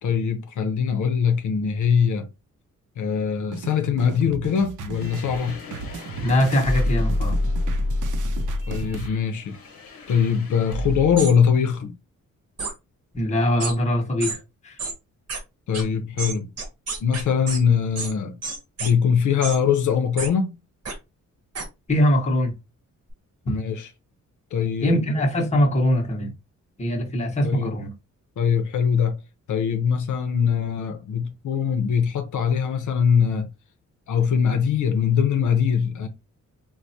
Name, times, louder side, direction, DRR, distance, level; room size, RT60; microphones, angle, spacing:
voice 1, 0.0-2.3 3.0-5.6 8.7-9.6 10.1-11.9 15.7-16.5 17.0-18.3 18.8-20.5 23.5-23.9 24.5-25.0 27.4-27.7 28.4-29.2 29.5-33.5 34.1-36.1, left 7 dB, 75° left, 0.6 m, -22 dB
sound 1, 3.5-9.1, right 5 dB, 75° right, 0.5 m, -35 dB
sound 2, 4.9-11.3, left 1 dB, 45° left, 0.9 m, -28 dB
voice 2, 6.2-7.4 13.1-14.8 21.9-22.5 24.8-26.3 26.8-27.9, left 1 dB, 20° left, 0.8 m, -22 dB
sound 3, 11.2-11.3 12.6-12.7 13.6-13.7 14.2-14.4 14.8-14.9 15.3-15.4 15.7-15.8 16.2-17.6 18.0-18.1 18.4-18.9 19.4-19.6 20.2-20.3 20.9-21.0 21.5-21.7, right 4 dB, 55° right, 0.9 m, -30 dB
4.5 x 2.1 x 2.6 m
wide cardioid pair, 175°, 31 cm